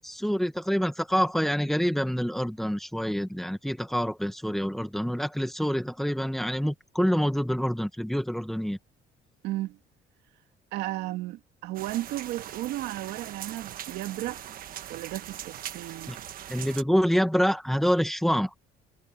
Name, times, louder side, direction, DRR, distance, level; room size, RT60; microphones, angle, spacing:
voice 1, 0.0-8.8 16.1-16.2 16.5-18.5, equal, ahead, 1.6 m, -26 dB
voice 2, 9.4-9.8 10.7-14.4 14.9-16.1, right 16 dB, 85° right, 2.1 m, -34 dB
sound 1, 11.7-16.8, right 11 dB, 60° right, 1.3 m, -41 dB
cardioid pair, 110°, 17 cm